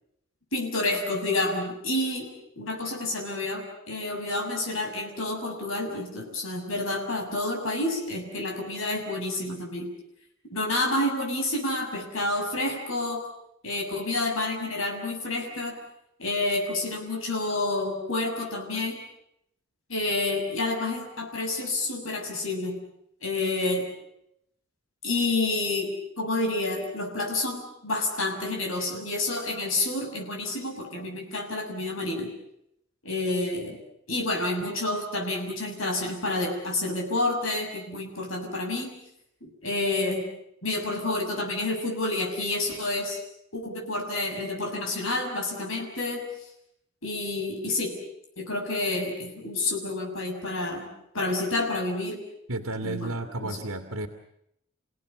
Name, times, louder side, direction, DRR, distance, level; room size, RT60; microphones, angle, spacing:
voice 1, 0.5-9.9 10.5-13.3 13.6-15.8 16.2-19.0 19.9-22.8 23.2-23.9 25.0-32.3 33.0-33.8 34.1-38.9 39.4-40.3 40.6-43.2 43.5-46.3 47.0-48.0 48.4-52.2 52.8-53.6, left 2 dB, 70° left, 2 dB, 6.8 m, -29 dB
voice 2, 52.5-54.1, right 2 dB, 80° right, 6 dB, 2.1 m, -32 dB
29.5 x 17.5 x 9.8 m, 0.78 s
head